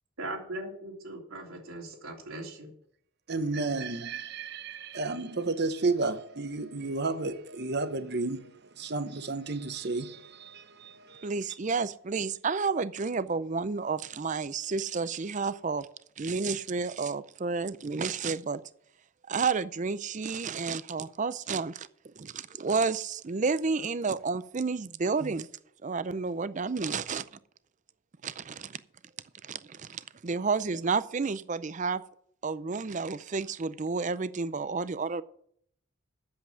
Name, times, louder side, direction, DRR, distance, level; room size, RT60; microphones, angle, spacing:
voice 1, 0.2-2.7, right 1 dB, 80° right, 3.3 m, -39 dB
voice 2, 3.3-8.5 8.8-11.3, right 3 dB, 50° right, 0.9 m, -32 dB
voice 3, 11.2-15.9 16.2-18.6 19.3-25.5 25.8-27.4 28.2-28.8 29.4-32.0 32.4-35.2, right 4 dB, 35° right, 0.5 m, -31 dB
8.7 x 7.6 x 8.7 m
head